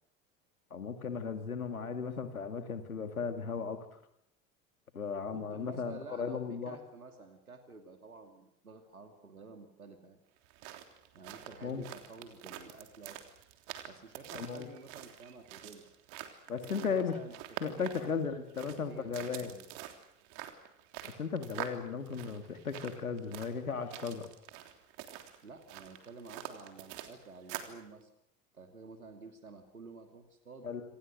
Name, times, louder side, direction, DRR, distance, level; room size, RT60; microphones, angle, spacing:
voice 1, 0.7-3.9 4.9-6.8 11.6-11.8 14.3-14.7 16.5-17.2 17.6-19.5 21.0-24.3 30.6-30.8, left 5 dB, 85° left, 8 dB, 2.4 m, -36 dB
voice 2, 5.1-10.2 11.1-13.2 13.9-15.9 16.7-18.2 18.7-19.7 25.4-28.1 28.5-30.7, right 4 dB, 85° right, 5 dB, 2.7 m, -51 dB
sound 1, 10.4-27.8, right 12 dB, 55° right, 3.4 m, -46 dB
27.5 x 26.5 x 6.6 m, 0.77 s
figure-of-eight pair, 75°, 42 cm